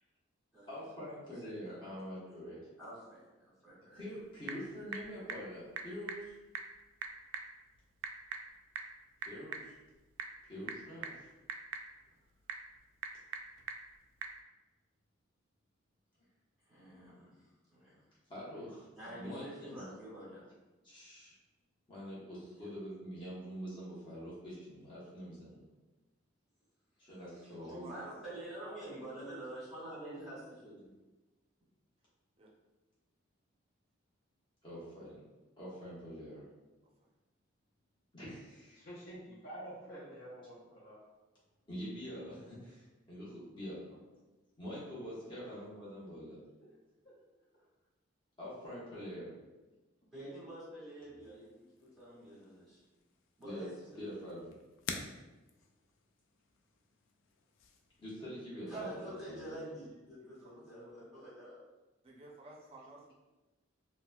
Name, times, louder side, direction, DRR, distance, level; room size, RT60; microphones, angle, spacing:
voice 1, 0.7-2.6 3.9-6.3 9.3-9.7 10.5-11.3 18.3-19.9 20.8-21.4 21.9-25.6 27.0-27.9 34.6-35.2 35.6-36.4 38.1-38.8 41.7-43.9 44.6-46.4 48.4-49.3 53.4-53.7 54.0-54.5 58.0-59.0 59.3-59.8, equal, 25° left, -9 dB, 0.9 m, -45 dB
voice 2, 1.4-1.8 2.8-4.0 16.7-17.3 17.7-18.0 18.9-20.4 22.5-22.6 27.9-30.9 50.1-52.8 53.4-54.2 58.7-61.6, right 1 dB, ahead, -10 dB, 1.5 m, -47 dB
Typing / Telephone, 3.9-14.4, right 5 dB, 90° right, 0.3 m, -46 dB
voice 3, 27.4-29.6 32.4-32.5 37.0-37.1 60.2-60.6 62.0-63.1, right 2 dB, 30° right, -1 dB, 0.5 m, -54 dB
voice 4, 38.7-41.0 45.4-45.6 47.0-47.1 47.5-47.6, right 1 dB, 60° left, -9 dB, 0.9 m, -49 dB
sound 1, 51.2-58.2, left 5 dB, 85° left, 0.3 m, -50 dB
3.9 x 2.1 x 2.2 m, 1.1 s
head